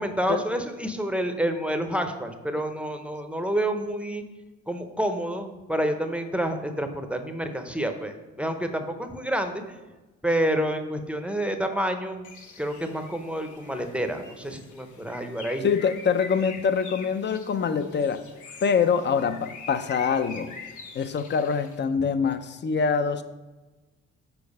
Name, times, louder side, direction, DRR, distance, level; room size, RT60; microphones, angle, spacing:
voice 1, 0.0-4.2 4.7-9.8 10.2-12.3 12.6-15.6, right 1 dB, 5° right, 6 dB, 0.7 m, -28 dB
Bird, 12.2-21.8, left 5 dB, 80° left, 1.0 m, -44 dB
voice 2, 15.6-18.2 18.6-20.5 20.9-23.2, left 6 dB, 35° left, 12 dB, 0.6 m, -24 dB
7.0 x 4.6 x 5.3 m, 1.1 s
cardioid pair, 90°, 30 cm